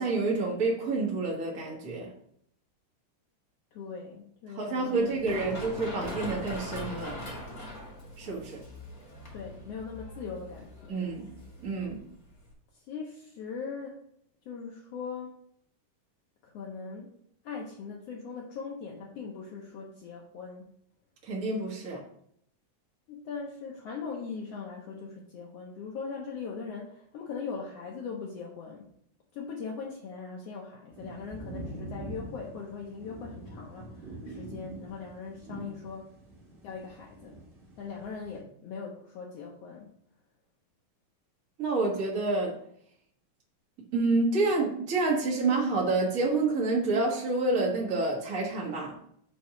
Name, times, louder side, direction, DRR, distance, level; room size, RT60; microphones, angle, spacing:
voice 1, 0.0-2.1 4.5-7.4 8.2-8.6 10.9-11.3 11.6-12.0 21.2-22.0 41.6-42.6 43.9-49.0, right 3 dB, 85° right, -3 dB, 0.7 m, -28 dB
voice 2, 3.7-5.2 9.3-11.0 12.9-14.0 14.5-15.3 16.4-17.1 17.4-20.6 23.1-28.9 29.3-36.1 36.6-37.4 37.8-39.9, left 5 dB, 80° left, -2 dB, 1.4 m, -40 dB
Run, 5.0-12.5, left 1 dB, 40° left, 0.9 m, -41 dB
sound 1, 30.9-38.4, right 2 dB, 50° right, 0.6 m, -44 dB
7.4 x 2.8 x 5.6 m, 0.69 s
omnidirectional pair, 3.8 m